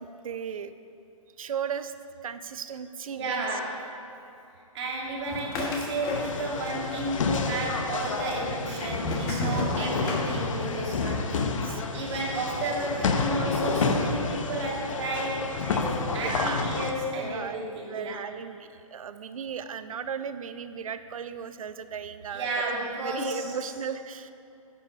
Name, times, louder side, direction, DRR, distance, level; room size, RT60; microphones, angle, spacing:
voice 1, 0.2-0.7 1.4-1.9 2.2-3.6 11.6-12.0 16.2-16.7 17.1-24.3, right 7 dB, 70° right, 12 dB, 0.6 m, -36 dB
voice 2, 3.1-3.9 4.7-11.5 11.9-18.2 22.3-23.4, right 2 dB, 50° right, -3 dB, 2.4 m, -32 dB
sound 1, 5.3-6.7 7.0-7.7 8.3-10.8, left 2 dB, 20° left, 1.2 m, -32 dB
sound 2, 6.1-16.9, left 4 dB, 60° left, 0.9 m, -30 dB
10.5 x 7.6 x 5.1 m, 2.7 s
hypercardioid pair, 145°, 18 cm